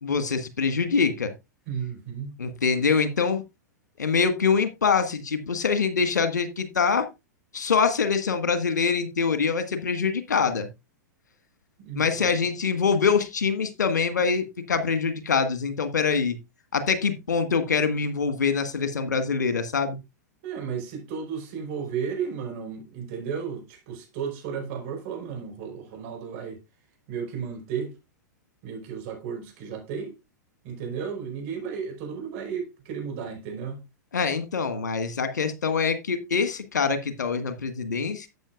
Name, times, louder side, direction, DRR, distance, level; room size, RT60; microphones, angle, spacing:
voice 1, 0.0-1.3 2.4-3.4 4.0-7.1 7.5-10.7 11.9-16.4 16.7-20.0 34.1-38.3, left 5 dB, 70° left, 1.5 m, -24 dB
voice 2, 1.7-2.4 11.8-12.3 20.4-26.6 27.1-27.9 28.6-30.2 30.6-33.8, right 7 dB, 45° right, 5.0 m, -33 dB
12.5 x 8.3 x 2.5 m
figure-of-eight pair, 100°, 10 cm